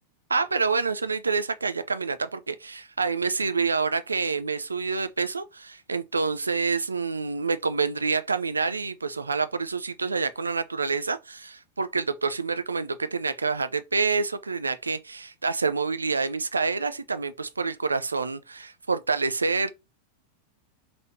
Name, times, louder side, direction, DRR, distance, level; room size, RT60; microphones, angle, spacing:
voice 1, 0.3-19.7, right 4 dB, 80° right, 0.3 m, -27 dB
3.2 x 2.6 x 3.0 m
figure-of-eight pair, 90°, 0 cm